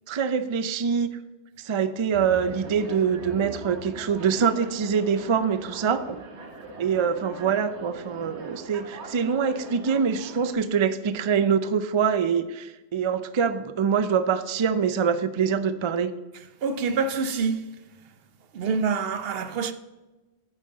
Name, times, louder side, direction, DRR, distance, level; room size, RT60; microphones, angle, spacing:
voice 1, 0.1-1.1 1.6-6.2 6.8-16.1, right 6 dB, 50° right, 0.3 m, -24 dB
sound 1, 2.1-10.5, right 3 dB, 85° right, 1.5 m, -41 dB
voice 2, 16.3-18.2 18.5-19.7, right 5 dB, 65° right, 0.8 m, -27 dB
9.3 x 7.3 x 3.8 m
omnidirectional pair, 1.1 m